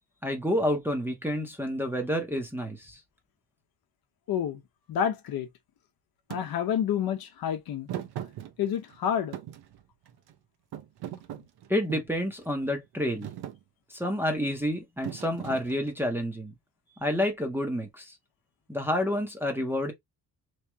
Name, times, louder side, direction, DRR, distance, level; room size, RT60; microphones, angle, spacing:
voice 1, 0.2-3.0 11.7-13.3 13.9-16.5 17.0-18.1 18.7-19.9, left 1 dB, 5° right, 0.7 m, -29 dB
voice 2, 4.3-4.6 4.9-5.5 6.3-7.9 8.6-9.4, left 9 dB, 60° left, 0.8 m, -29 dB
Thump thud, 6.3-6.5 7.9-9.0 9.3-10.3 10.7-12.2 12.7-13.0 13.2-13.6 15.0-16.1, right 11 dB, 70° right, 0.7 m, -39 dB
3.1 x 2.8 x 3.3 m
cardioid pair, 165°, 40 cm